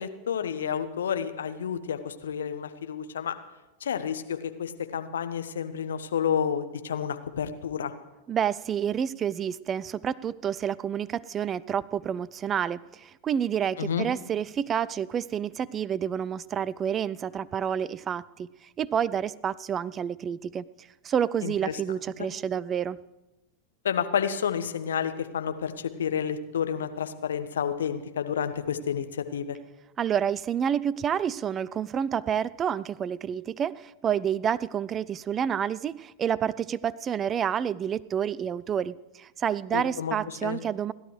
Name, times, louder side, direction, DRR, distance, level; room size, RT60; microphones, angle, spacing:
voice 1, 0.0-3.3 3.8-7.9 13.8-14.1 21.4-21.8 23.8-29.6 39.7-40.6, left 8 dB, 65° left, 9 dB, 1.0 m, -30 dB
voice 2, 8.3-18.5 18.8-23.0 30.0-40.9, right 8 dB, 25° right, 21 dB, 0.4 m, -29 dB
30.0 x 12.0 x 3.2 m, 1.1 s
figure-of-eight pair, 90°, 0 cm